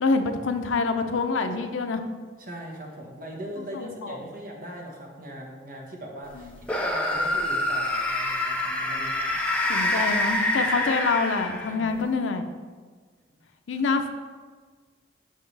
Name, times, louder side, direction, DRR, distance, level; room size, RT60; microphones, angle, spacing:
voice 1, 0.0-2.0 3.7-4.2 6.4-6.6 9.7-12.4 13.7-14.1, left 4 dB, 90° left, 6 dB, 0.6 m, -26 dB
voice 2, 2.4-9.4 9.8-10.2 11.6-12.0, equal, 45° right, 0 dB, 1.2 m, -40 dB
sound 1, 6.6-11.9, left 1 dB, 5° left, 0.6 m, -26 dB
7.5 x 5.8 x 3.3 m, 1.5 s
head